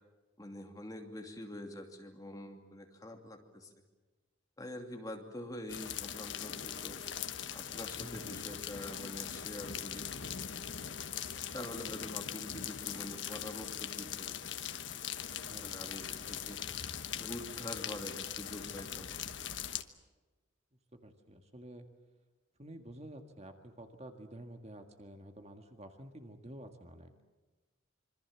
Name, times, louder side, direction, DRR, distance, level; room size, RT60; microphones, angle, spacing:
voice 1, 0.4-3.7 4.6-7.0 7.5-10.1 11.5-14.4 15.6-16.6 17.2-19.5, left 1 dB, 20° left, 3 dB, 2.7 m, -45 dB
sound 1, 5.7-19.8, left 9 dB, 65° left, 1.2 m, -41 dB
voice 2, 8.0-8.6 15.3-15.9 20.9-21.9 22.6-27.1, right 1 dB, 35° right, 6 dB, 1.9 m, -50 dB
26.5 x 24.5 x 7.4 m, 1.2 s
head